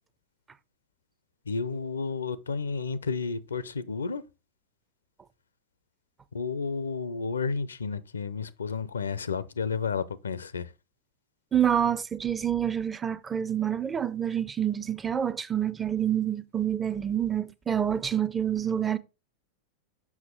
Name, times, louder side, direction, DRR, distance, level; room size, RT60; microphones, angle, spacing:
voice 1, 1.5-4.2 6.3-10.7, left 5 dB, 70° left, 0.5 m, -31 dB
voice 2, 11.5-19.0, right 9 dB, 15° right, 0.5 m, -27 dB
7.2 x 5.9 x 3.7 m
figure-of-eight pair, 90°, 0 cm